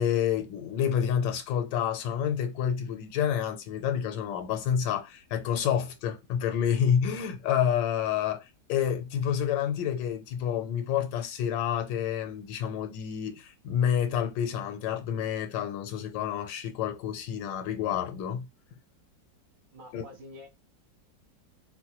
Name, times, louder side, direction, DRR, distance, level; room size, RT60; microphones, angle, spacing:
voice 1, 0.0-18.5 19.9-20.0, left 9 dB, 85° left, 1.3 m, -29 dB
voice 2, 19.7-20.5, left 1 dB, 75° right, 2.2 m, -47 dB
4.3 x 2.2 x 2.8 m
omnidirectional pair, 1.9 m